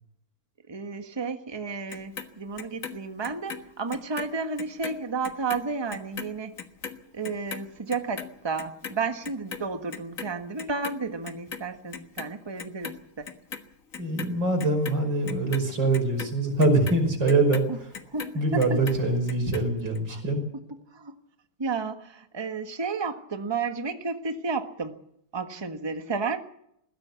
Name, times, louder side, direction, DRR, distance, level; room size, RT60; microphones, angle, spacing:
voice 1, 0.7-6.5 7.1-13.3 17.7-17.8 18.1-18.8 20.1-20.2 20.9-21.1 21.6-25.0 25.3-26.4, right 4 dB, 15° right, 7 dB, 1.1 m, -32 dB
Clock, 1.9-4.3 4.6-11.0 11.2-12.3 12.6-13.6 13.9-18.3 18.6-19.6 20.0-20.1, left 6 dB, 40° left, 1.7 m, -39 dB
voice 2, 14.0-17.9 18.3-20.4, right 2 dB, 55° right, 3 dB, 6.1 m, -24 dB
21.0 x 16.0 x 8.2 m, 0.74 s
omnidirectional pair, 2.4 m